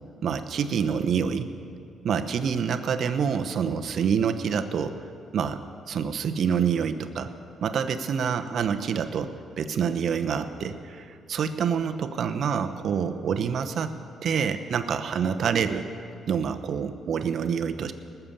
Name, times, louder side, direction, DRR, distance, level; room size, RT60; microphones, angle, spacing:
voice 1, 0.2-1.5 2.0-5.1 5.3-5.6 5.9-7.3 7.6-13.9 14.2-15.9 16.3-17.9, right 7 dB, 60° right, 9 dB, 0.9 m, -27 dB
19.5 x 7.0 x 7.3 m, 2.4 s
cardioid pair, 90°, 0 cm